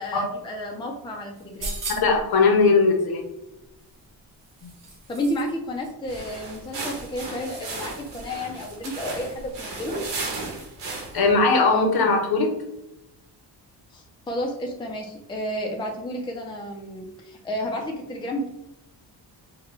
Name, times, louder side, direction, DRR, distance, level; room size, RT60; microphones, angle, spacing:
voice 1, 0.0-1.7 5.1-10.0 13.9-18.5, left 1 dB, 10° left, 1 dB, 0.4 m, -31 dB
sound 1, 1.4-2.3 3.8-5.5 5.8-5.9, right 2 dB, 50° right, 1.3 m, -36 dB
voice 2, 2.0-3.2 4.6-4.7 11.1-12.5, left 4 dB, 60° left, 3 dB, 0.9 m, -19 dB
sound 2, 6.0-11.3, right 3 dB, 90° right, 1.2 m, -35 dB
4.8 x 2.2 x 3.3 m, 0.91 s
wide cardioid pair, 170°, 41 cm